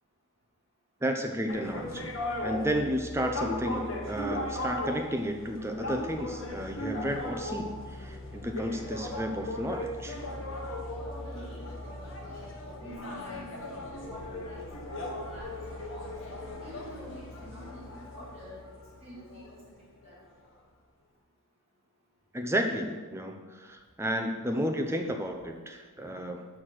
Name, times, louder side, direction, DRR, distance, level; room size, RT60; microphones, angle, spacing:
voice 1, 1.0-2.1 2.4-10.2 22.3-26.5, equal, 10° right, 3 dB, 0.6 m, -32 dB
sound 1, 1.5-20.1, left 1 dB, 60° left, 1.4 m, -38 dB
voice 2, 11.0-14.6 15.0-16.2 16.6-18.6 19.0-19.5 19.8-20.2, equal, 30° right, -7 dB, 2.1 m, -48 dB
6.5 x 6.5 x 5.8 m, 1.4 s
head